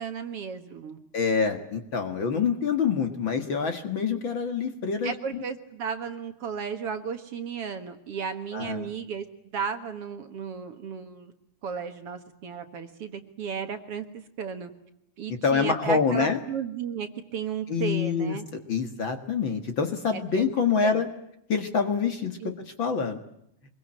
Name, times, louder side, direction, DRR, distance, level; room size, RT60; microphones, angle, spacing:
voice 1, 0.0-1.0 5.0-9.3 9.5-11.3 11.6-14.1 14.4-14.7 15.2-18.5 20.3-20.5 20.8-21.0 22.4-22.5, right 6 dB, 55° right, 8 dB, 2.3 m, -34 dB
voice 2, 1.1-5.4 8.5-8.9 15.4-16.4 17.7-18.4 18.7-21.1 21.5-23.2, left 5 dB, 45° left, 7 dB, 2.2 m, -26 dB
24.5 x 22.5 x 8.9 m, 0.77 s
omnidirectional pair, 3.4 m